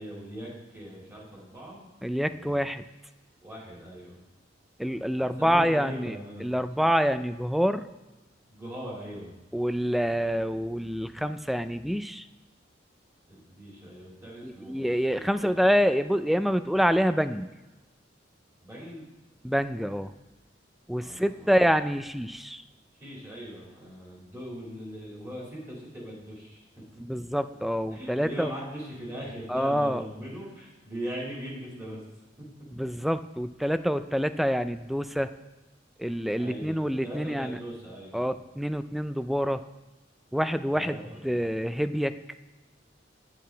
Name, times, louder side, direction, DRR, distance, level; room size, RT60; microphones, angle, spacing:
voice 1, 0.0-1.9 2.3-2.6 3.4-4.2 5.2-6.5 8.5-9.3 13.3-15.7 18.6-19.1 21.0-21.6 23.0-26.6 27.9-32.0 32.4-32.5 36.4-38.2 40.7-41.5, equal, 15° right, -5 dB, 3.4 m, -40 dB
voice 2, 2.0-2.8 4.8-7.9 9.5-12.3 14.4-17.5 19.4-20.1 20.9-22.6 27.0-28.5 29.5-30.0 32.7-35.3 36.0-37.6 38.1-39.6 40.3-42.1, equal, ahead, 11 dB, 0.3 m, -27 dB
9.7 x 9.5 x 3.9 m, 1.1 s
head